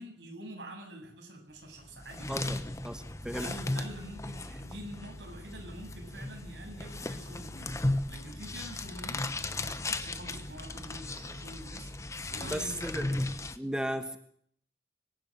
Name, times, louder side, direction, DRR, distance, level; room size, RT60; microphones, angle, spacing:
voice 1, 0.0-2.5 3.3-9.2 9.5-13.2, right 1 dB, 85° right, 2 dB, 7.6 m, -46 dB
sound 1, 1.8-13.6, left 2 dB, 15° left, 1.1 m, -36 dB
voice 2, 2.3-3.5 12.4-13.2 13.6-14.2, equal, 5° right, 7 dB, 1.3 m, -35 dB
25.0 x 11.5 x 9.1 m, 0.65 s
head